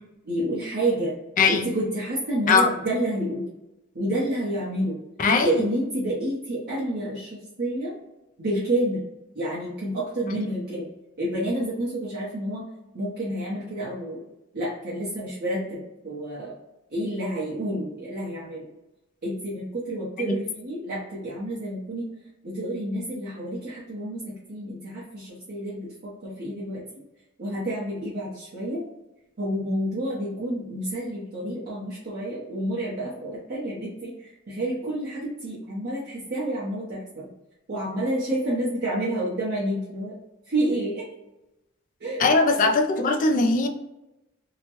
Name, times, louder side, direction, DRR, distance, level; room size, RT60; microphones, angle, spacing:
voice 1, 0.2-1.1 1.5-3.5 3.9-5.0 5.4-7.9 8.4-9.0 9.3-10.9 11.2-12.6 12.9-14.2 14.5-16.5 16.9-18.7 19.2-22.1 22.4-26.8 27.4-28.8 29.4-37.3 37.7-40.1 40.5-41.0 42.0-42.3, right 1 dB, 50° right, -8 dB, 0.9 m, -29 dB
voice 2, 5.2-5.5 20.3-20.4 42.2-43.7, left 4 dB, 40° left, 5 dB, 0.4 m, -20 dB
2.9 x 2.2 x 2.9 m, 0.94 s
head